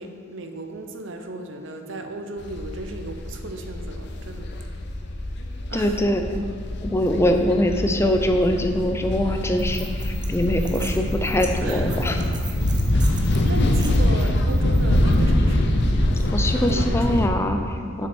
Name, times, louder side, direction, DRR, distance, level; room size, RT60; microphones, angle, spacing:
voice 1, 0.0-4.5 5.7-6.0 11.6-12.1 12.9-15.9 16.6-17.2 18.0-18.1, right 2 dB, 65° right, 5 dB, 0.7 m, -35 dB
sound 1, 2.4-17.3, left 1 dB, 55° left, 0.7 m, -24 dB
voice 2, 5.7-6.2 6.8-12.2 16.3-18.1, left 1 dB, 15° left, 5 dB, 0.5 m, -23 dB
sound 2, 9.6-15.2, right 5 dB, 20° right, 0.7 m, -42 dB
7.5 x 6.3 x 4.4 m, 2.3 s
head